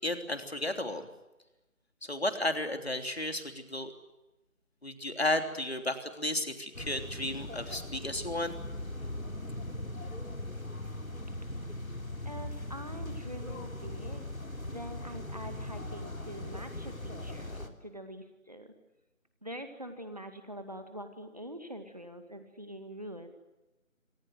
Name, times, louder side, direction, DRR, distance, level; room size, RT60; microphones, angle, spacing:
voice 1, 0.0-1.1 2.0-3.9 4.8-8.5, left 1 dB, 50° left, 7 dB, 3.5 m, -33 dB
sound 1, 6.7-17.7, left 1 dB, 85° left, 3.8 m, -40 dB
voice 2, 12.2-14.2 14.6-18.7 19.4-23.3, equal, 30° right, 7 dB, 2.2 m, -44 dB
27.5 x 24.5 x 7.9 m, 1.0 s
figure-of-eight pair, 175°, 40 cm